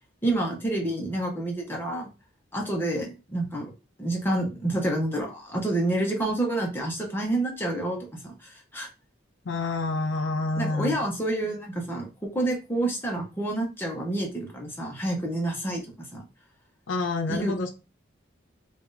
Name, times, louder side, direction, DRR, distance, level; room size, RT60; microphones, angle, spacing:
voice 1, 0.2-2.1 2.5-3.7 4.0-8.9 10.5-12.1 12.3-16.2 17.3-17.7, right 1 dB, 10° left, 0 dB, 0.9 m, -28 dB
voice 2, 9.5-11.0 16.9-17.7, left 3 dB, 75° left, 6 dB, 0.5 m, -28 dB
2.9 x 2.5 x 3.7 m, 0.29 s
head